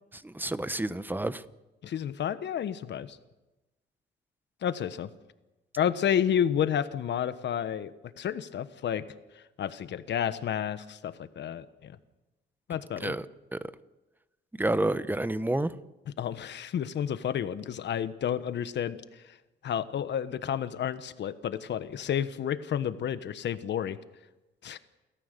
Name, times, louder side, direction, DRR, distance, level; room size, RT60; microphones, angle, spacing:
voice 1, 0.2-1.4 13.0-13.3 13.5-13.6 14.5-15.8, right 1 dB, 10° right, 14 dB, 1.0 m, -29 dB
voice 2, 1.8-3.2 4.6-5.1 5.8-9.0 9.6-12.0 12.7-13.2 16.2-19.0 19.6-24.0 24.6-24.8, left 9 dB, 65° left, 12 dB, 1.2 m, -30 dB
29.0 x 14.0 x 6.8 m, 1.1 s
cardioid pair, 90°, 20 cm